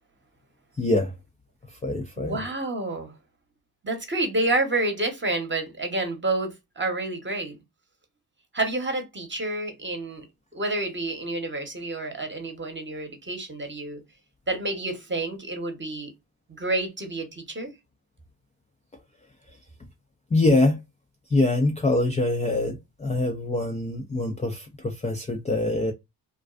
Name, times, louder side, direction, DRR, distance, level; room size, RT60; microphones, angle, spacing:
voice 1, 0.8-1.1 1.7-2.4 20.3-20.8 21.3-25.9, left 2 dB, 15° left, 0.3 m, -24 dB
voice 2, 2.2-3.1 3.8-7.6 8.5-10.2 10.5-14.0 14.5-16.1 16.5-17.7, right 2 dB, 25° right, 0.9 m, -29 dB
2.4 x 2.2 x 2.4 m
supercardioid pair, 55°, 46 cm